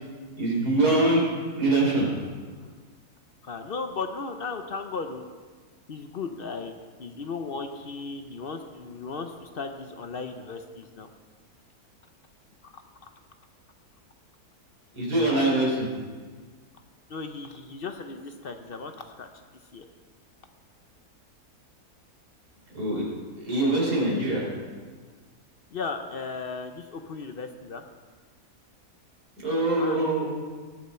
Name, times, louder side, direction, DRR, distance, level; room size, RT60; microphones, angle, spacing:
voice 1, 0.4-1.2 1.6-2.3 14.9-15.9 22.7-23.0 23.4-24.5 29.4-30.3, right 2 dB, 80° right, -4 dB, 4.3 m, -23 dB
voice 2, 3.4-5.3 5.9-6.7 7.0-11.1 12.6-12.8 17.1-19.3 19.7-19.9 25.7-27.8 29.8-30.3, left 4 dB, 50° left, 6 dB, 0.7 m, -36 dB
19.5 x 7.1 x 4.3 m, 1.5 s
omnidirectional pair, 1.7 m